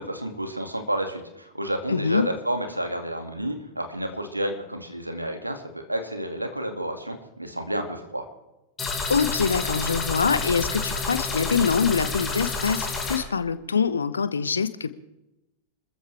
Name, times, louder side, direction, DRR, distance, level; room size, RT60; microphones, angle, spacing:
voice 1, 0.0-8.3, right 1 dB, 85° right, 5 dB, 2.2 m, -30 dB
voice 2, 1.9-2.3 9.1-14.9, left 5 dB, 75° left, 14 dB, 0.9 m, -24 dB
sound 1, 8.8-13.2, left 3 dB, 15° left, 4.7 m, -29 dB
27.5 x 14.0 x 3.4 m, 0.92 s
figure-of-eight pair, 90°, 0 cm